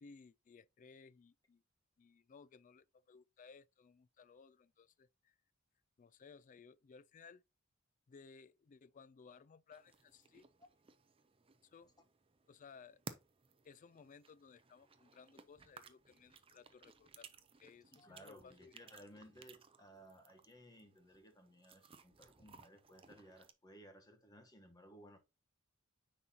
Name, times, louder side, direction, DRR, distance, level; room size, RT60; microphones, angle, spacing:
voice 1, 0.0-1.6 2.0-5.4 6.0-7.4 8.1-10.5 11.6-11.9 12.5-13.0 13.6-17.3 17.6-18.7, left 5 dB, 35° left, 0.3 m, -60 dB
sound 1, 9.7-23.5, right 4 dB, 25° right, 0.5 m, -59 dB
voice 2, 17.9-25.2, equal, 20° left, 1.1 m, -59 dB
9.6 x 4.1 x 2.8 m
head